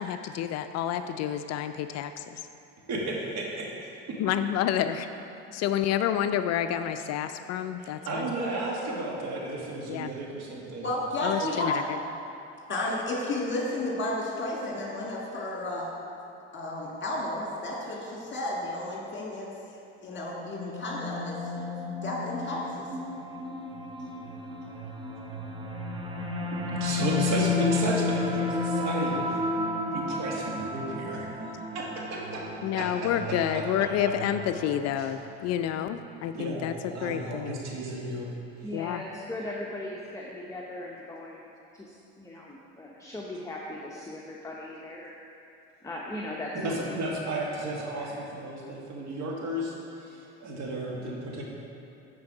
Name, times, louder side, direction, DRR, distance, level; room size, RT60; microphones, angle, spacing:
voice 1, 0.0-2.4 4.2-5.1 5.5-8.3 9.9-10.1 11.2-12.0 32.6-36.7 37.0-37.6 38.7-39.0, left 10 dB, 50° left, 9 dB, 0.4 m, -29 dB
voice 2, 2.9-4.2 7.8-10.9 11.4-11.5 26.5-29.5 29.9-32.5 32.7-34.1 35.0-35.1 36.3-38.3 46.5-51.4, right 2 dB, 50° right, -2 dB, 1.8 m, -34 dB
voice 3, 10.8-11.8 12.7-15.9 16.5-19.5 20.0-21.4 22.0-22.9, left 1 dB, 35° left, -3 dB, 1.8 m, -32 dB
sound 1, 20.2-35.5, left 3 dB, 15° right, 1.0 m, -32 dB
voice 4, 38.6-41.4 41.7-45.1 45.8-47.0 47.8-48.2, left 1 dB, 10° left, -3 dB, 0.9 m, -39 dB
9.4 x 4.6 x 4.9 m, 2.8 s
hypercardioid pair, 75°, 34 cm